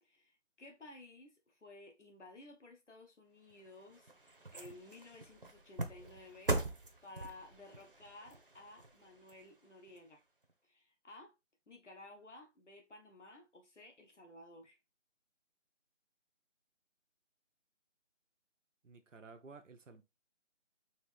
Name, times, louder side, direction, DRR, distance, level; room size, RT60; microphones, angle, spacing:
voice 1, 0.0-6.6 7.0-10.2 10.6-11.3 11.7-14.8, left 2 dB, 70° left, 1.2 m, -55 dB
sound 1, 3.5-10.0 10.4-10.5, right 2 dB, 45° right, 0.7 m, -42 dB
voice 2, 18.8-20.0, right 4 dB, 85° right, 0.8 m, -54 dB
4.2 x 2.9 x 3.3 m
figure-of-eight pair, 175°, 37 cm